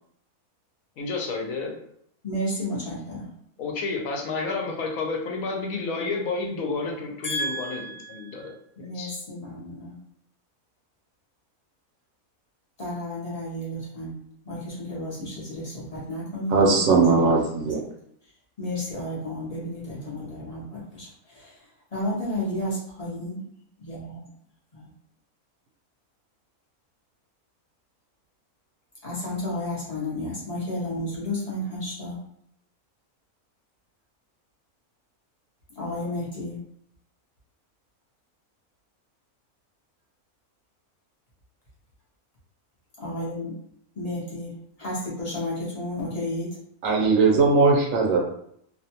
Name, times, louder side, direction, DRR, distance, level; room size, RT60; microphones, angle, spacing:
voice 1, 1.0-1.8 3.6-7.8 8.1-9.1, left 3 dB, 70° left, 1 dB, 1.0 m, -30 dB
voice 2, 2.2-3.3 7.2-10.0 12.8-14.2 14.4-16.8 17.4-17.5 18.6-21.6 21.9-23.4 23.8-24.2 24.7-24.9 29.0-32.2 35.7-36.6 43.0-43.6 44.0-46.5, left 1 dB, 40° left, -6 dB, 0.6 m, -32 dB
voice 3, 16.5-17.8 46.8-48.2, right 4 dB, 70° right, 0 dB, 1.0 m, -19 dB
2.6 x 2.2 x 2.8 m, 0.69 s
omnidirectional pair, 1.6 m